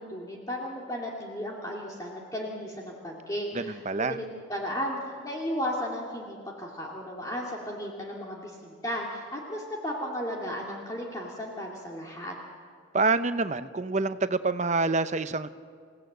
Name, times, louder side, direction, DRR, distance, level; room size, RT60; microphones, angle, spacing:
voice 1, 0.0-12.3, equal, 20° left, -2 dB, 2.2 m, -35 dB
voice 2, 3.5-4.2 12.9-15.5, right 3 dB, 35° right, 12 dB, 0.7 m, -27 dB
28.5 x 17.0 x 7.8 m, 2.1 s
head